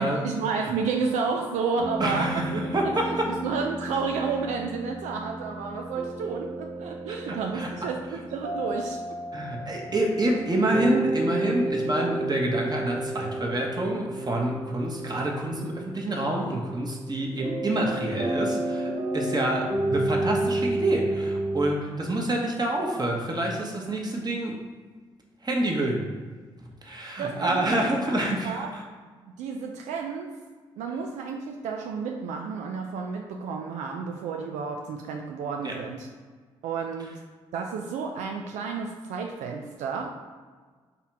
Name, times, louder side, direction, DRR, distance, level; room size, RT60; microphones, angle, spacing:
voice 1, 0.0-2.6 2.8-3.0 3.3-9.0 27.2-28.2 28.4-28.7 29.4-30.4 30.8-36.1 36.6-37.2 37.5-40.1, right 5 dB, 80° right, 2 dB, 0.4 m, -31 dB
sound 1, 1.8-21.7, right 1 dB, 55° right, 1.1 m, -32 dB
voice 2, 2.0-3.3 7.3-7.7 9.3-24.6 25.4-26.1 26.6-28.8 35.6-35.7, right 1 dB, 35° right, -1 dB, 1.2 m, -27 dB
4.0 x 2.8 x 4.7 m, 1.5 s
hypercardioid pair, 45°, 12 cm